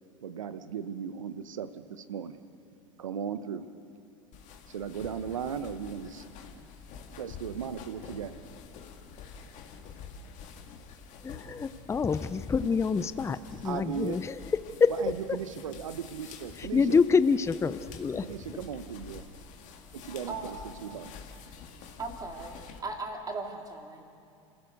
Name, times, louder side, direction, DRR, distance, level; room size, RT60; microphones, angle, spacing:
voice 1, 0.2-2.4 3.0-3.6 4.7-6.3 7.2-8.4 13.6-14.2 14.9-17.0 18.2-19.3 19.9-21.1, right 7 dB, 85° right, 11 dB, 1.1 m, -37 dB
sound 1, 4.3-22.8, left 6 dB, 50° left, 2.3 m, -48 dB
voice 2, 11.2-14.4 14.8-14.9 15.3-15.4 16.6-18.3, left 5 dB, 15° left, 14 dB, 0.7 m, -26 dB
voice 3, 22.0-24.0, right 3 dB, 25° right, 1 dB, 3.3 m, -38 dB
28.0 x 16.0 x 6.6 m, 2.6 s
hypercardioid pair, 90°, 16 cm